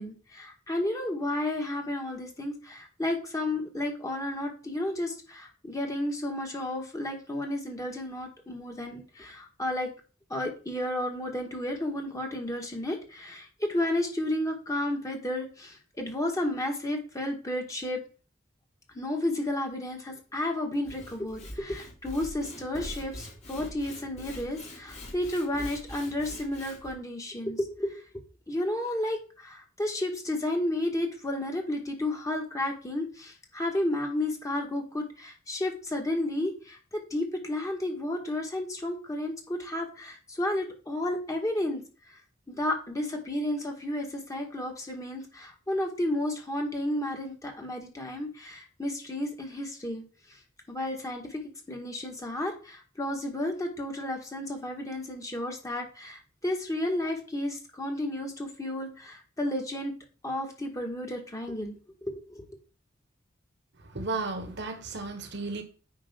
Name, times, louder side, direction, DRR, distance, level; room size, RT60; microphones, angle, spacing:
voice 1, 0.0-9.9 10.3-18.0 18.9-28.0 28.5-41.8 42.5-50.0 50.7-51.4 51.7-59.9 60.2-61.8 62.0-62.4, left 1 dB, 15° left, 1.7 m, -32 dB
Sawing / Wood, 20.7-26.9, left 1 dB, 35° left, 2.3 m, -43 dB
voice 2, 63.9-65.6, right 3 dB, 60° right, 1.3 m, -33 dB
9.0 x 5.2 x 3.7 m
head